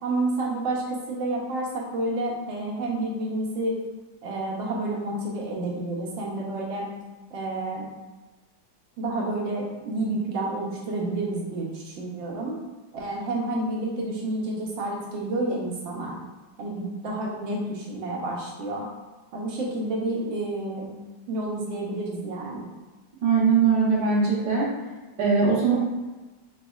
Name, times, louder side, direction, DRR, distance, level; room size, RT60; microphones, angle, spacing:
voice 1, 0.0-3.7 4.2-6.9 7.3-7.9 9.0-12.6 12.9-16.2 16.6-18.9 19.3-20.9 21.3-22.6, right 2 dB, 85° right, -3 dB, 1.6 m, -29 dB
voice 2, 23.2-24.7 25.2-25.8, right 5 dB, 70° right, -7 dB, 1.7 m, -21 dB
4.2 x 4.1 x 2.4 m, 1.2 s
omnidirectional pair, 2.0 m